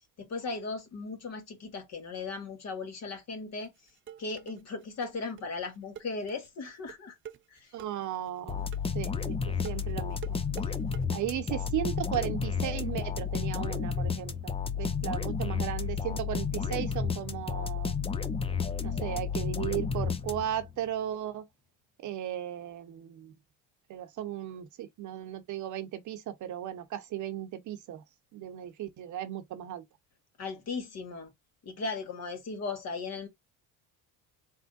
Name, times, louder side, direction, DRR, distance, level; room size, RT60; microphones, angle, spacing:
voice 1, 0.2-3.7 4.2-7.2 7.5-7.7 30.4-31.3 31.6-33.3, left 4 dB, 45° left, 1.8 m, -37 dB
sound 1, 3.6-11.0, right 9 dB, 35° right, 0.6 m, -47 dB
voice 2, 7.7-8.7 8.9-10.4 11.1-17.9 18.8-21.5 22.0-23.3 23.9-28.0 28.3-29.8, right 12 dB, 55° right, 0.9 m, -36 dB
sound 2, 8.5-20.7, left 6 dB, 15° left, 0.5 m, -32 dB
4.1 x 3.6 x 2.6 m
cardioid pair, 110°, 36 cm